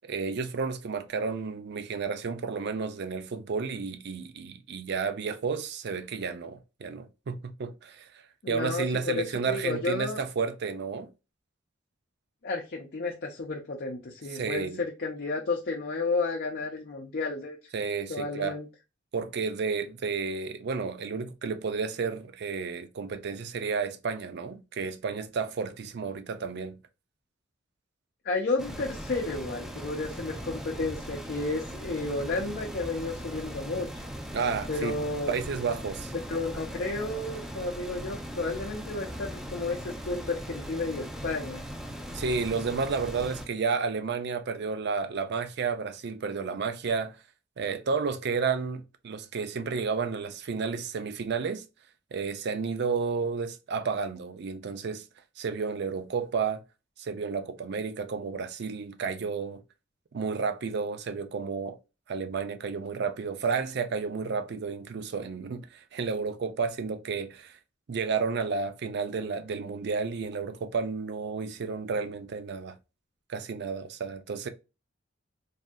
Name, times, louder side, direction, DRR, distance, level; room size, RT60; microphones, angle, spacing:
voice 1, 0.0-8.1 8.5-11.1 14.3-14.8 17.7-18.6 19.1-26.8 34.3-35.0 35.3-36.1 42.1-47.2 47.6-51.6 52.1-55.0 55.4-56.6 57.0-59.6 60.1-61.8 62.1-65.7 65.9-67.5 67.9-72.8 73.3-74.5, right 5 dB, 60° right, 0.4 m, -31 dB
voice 2, 8.4-10.2 12.4-17.6 18.1-18.7 28.2-34.0 34.7-35.4 36.3-41.6, left 3 dB, 55° left, 0.6 m, -32 dB
sound 1, 28.6-43.5, equal, ahead, 0.4 m, -39 dB
3.4 x 2.6 x 2.2 m
head